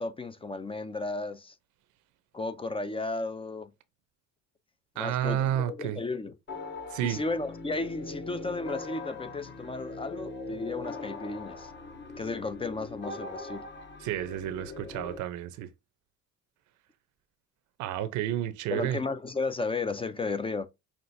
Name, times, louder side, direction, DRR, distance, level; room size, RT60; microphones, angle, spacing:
voice 1, 0.0-1.5 2.3-3.7 5.0-6.3 7.0-11.7 12.2-13.7 18.7-20.7, left 3 dB, 20° left, 0.5 m, -34 dB
voice 2, 5.0-6.0 6.9-7.2 14.0-15.7 17.8-19.0, right 11 dB, 75° right, 0.7 m, -31 dB
sound 1, 6.5-15.2, left 3 dB, 35° left, 1.0 m, -41 dB
5.9 x 2.5 x 2.6 m
supercardioid pair, 85°, 31 cm